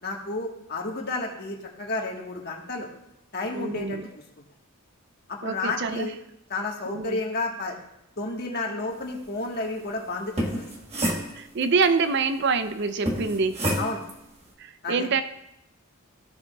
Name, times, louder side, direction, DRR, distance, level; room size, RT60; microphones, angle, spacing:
voice 1, 0.0-2.9 3.3-4.2 5.3-6.1 6.5-7.8 8.2-10.6 13.8-14.0 14.8-15.1, left 2 dB, 45° left, 0 dB, 1.4 m, -31 dB
voice 2, 3.5-4.1 5.4-6.1 6.9-7.2 11.4-13.6 14.6-15.2, right 4 dB, 50° right, 10 dB, 0.5 m, -26 dB
sound 1, 10.2-11.8 13.1-14.2, right 1 dB, 30° right, 1.2 m, -28 dB
15.0 x 7.0 x 2.3 m, 0.83 s
head